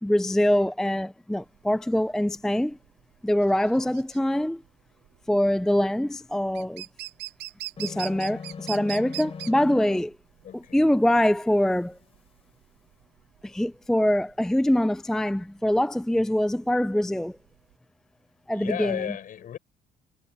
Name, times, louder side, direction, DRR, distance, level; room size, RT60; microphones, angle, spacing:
voice 1, 0.0-2.8 3.2-4.6 5.3-6.8 7.8-10.1 10.7-12.0 13.4-17.4 18.5-19.0, left 1 dB, 5° left, 0.4 m, -24 dB
sound 1, 1.4-17.7, right 17 dB, 80° right, 0.7 m, -42 dB
sound 2, 7.8-10.0, left 6 dB, 35° left, 4.6 m, -39 dB
voice 2, 10.4-10.9 18.5-19.6, left 9 dB, 55° left, 5.8 m, -34 dB
cardioid pair, 110°, 17 cm